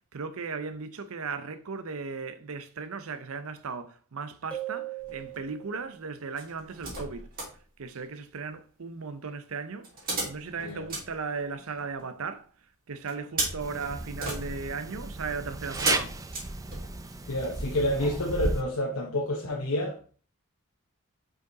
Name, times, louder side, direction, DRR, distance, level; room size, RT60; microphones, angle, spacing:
voice 1, 0.1-7.3 7.8-9.9 10.2-12.5 12.9-16.1, right 4 dB, 65° right, 0.6 m, -36 dB
sound 1, 4.5-6.0, right 13 dB, 5° left, 1.2 m, -38 dB
sound 2, 5.0-5.5 6.4-7.6 9.8-12.0 13.1-17.2 17.7-17.8, right 2 dB, 40° right, 2.6 m, -36 dB
sound 3, 13.6-18.6, right 2 dB, 15° right, 0.4 m, -34 dB
voice 2, 17.3-20.2, left 1 dB, 65° left, 1.0 m, -29 dB
5.2 x 5.0 x 3.9 m
head